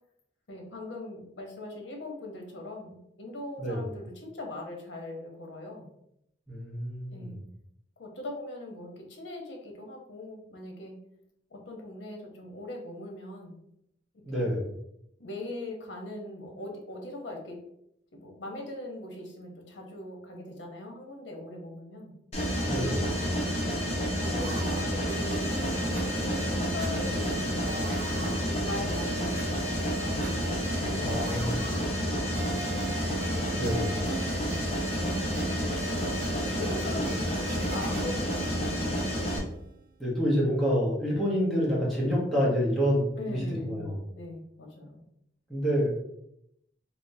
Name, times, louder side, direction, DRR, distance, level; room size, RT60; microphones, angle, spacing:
voice 1, 0.5-5.9 7.1-7.4 8.0-11.0 11.5-13.6 14.3-14.7 15.2-17.6 18.1-22.1 23.0-23.4 24.2-27.8 28.7-29.6 30.0-32.4 33.3-34.1 34.4-34.6 35.0-35.2 36.5-39.4 43.2-45.0, left 1 dB, 85° left, 2 dB, 0.8 m, -41 dB
voice 2, 6.5-7.3 14.3-14.7 22.7-23.0 31.0-31.7 33.5-33.9 40.0-44.0 45.5-45.9, equal, ahead, -8 dB, 1.0 m, -27 dB
Mechanisms, 22.3-39.4, equal, 35° left, 0.8 m, -30 dB
sound 1, 24.2-39.7, right 4 dB, 50° right, 0.4 m, -42 dB
3.5 x 2.9 x 2.6 m, 0.78 s
head